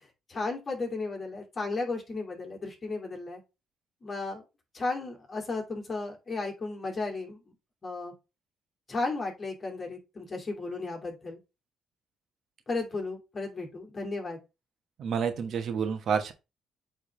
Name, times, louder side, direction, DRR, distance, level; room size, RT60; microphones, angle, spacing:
voice 1, 0.3-3.4 4.0-4.4 4.7-7.4 7.8-8.1 8.9-11.4 12.7-14.4, left 3 dB, 35° left, 2.6 m, -34 dB
voice 2, 15.0-16.3, right 7 dB, 65° right, 1.1 m, -29 dB
8.4 x 3.6 x 3.2 m
cardioid pair, 90°, 0 cm